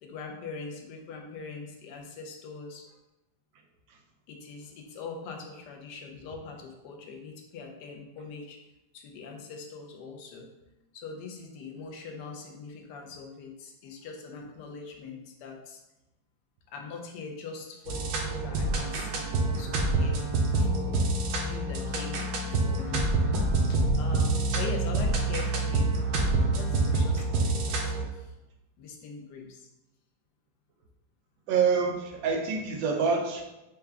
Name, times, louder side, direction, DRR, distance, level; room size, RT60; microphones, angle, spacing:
voice 1, 0.0-3.0 4.3-8.6 8.9-10.5 10.9-15.8 16.7-20.2 20.5-21.0 21.4-23.1 23.7-25.9 26.5-28.4 28.8-29.7, left 4 dB, 70° left, 2 dB, 1.1 m, -42 dB
sound 1, 17.9-28.0, right 2 dB, 70° right, 1.1 m, -27 dB
voice 2, 31.5-33.4, right 5 dB, 85° right, 2 dB, 1.3 m, -26 dB
4.7 x 2.2 x 3.3 m, 0.96 s
omnidirectional pair, 2.1 m